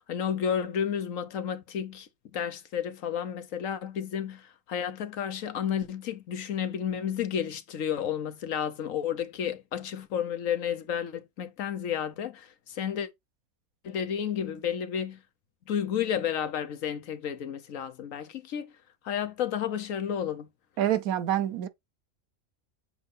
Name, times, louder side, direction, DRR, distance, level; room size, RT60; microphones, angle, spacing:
voice 1, 0.0-13.1 13.8-15.2 15.7-18.7 19.0-20.5, left 8 dB, 70° left, 1.2 m, -31 dB
voice 2, 20.8-21.7, right 11 dB, 90° right, 1.2 m, -26 dB
7.6 x 2.7 x 5.4 m
omnidirectional pair, 1.5 m